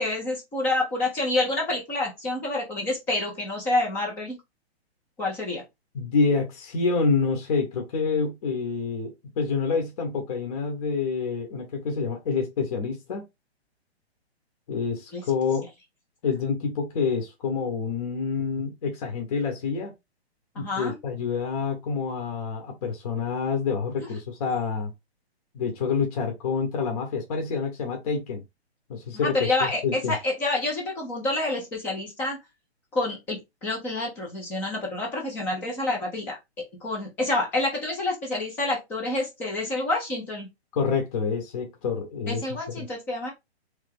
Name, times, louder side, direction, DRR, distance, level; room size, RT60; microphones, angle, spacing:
voice 1, 0.0-4.4 5.2-5.6 15.1-15.2 20.5-21.0 29.2-32.4 32.9-36.4 36.8-40.5 42.3-43.3, left 2 dB, 5° left, 0.5 m, -28 dB
voice 2, 5.9-13.2 14.7-15.7 16.2-19.9 20.5-24.9 25.5-28.4 28.9-30.2 40.7-42.4 42.8-42.9, left 5 dB, 35° left, 1.0 m, -27 dB
3.3 x 3.3 x 3.4 m
hypercardioid pair, 155°, 33 cm